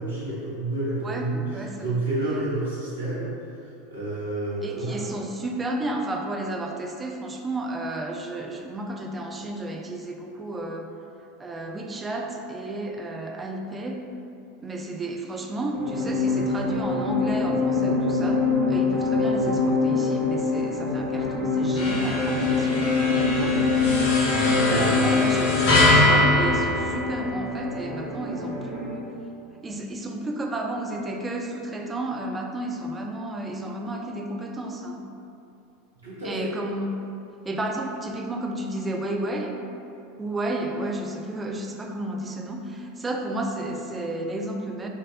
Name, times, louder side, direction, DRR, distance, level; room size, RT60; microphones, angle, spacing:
voice 1, 0.0-3.3 3.9-5.0 36.0-36.6, right 2 dB, 80° right, -9 dB, 1.0 m, -29 dB
voice 2, 1.0-1.9 4.6-10.9 11.4-14.0 14.6-18.4 18.7-22.8 23.1-23.6 24.5-29.1 29.6-35.0 36.2-37.0 37.4-39.6 40.2-44.9, right 1 dB, 15° right, 2 dB, 0.4 m, -32 dB
sound 1, 15.7-29.1, left 4 dB, 50° right, 1.3 m, -24 dB
sound 2, 21.8-27.6, left 1 dB, 50° left, 0.8 m, -23 dB
3.7 x 2.5 x 3.7 m, 2.7 s
figure-of-eight pair, 80°, 0 cm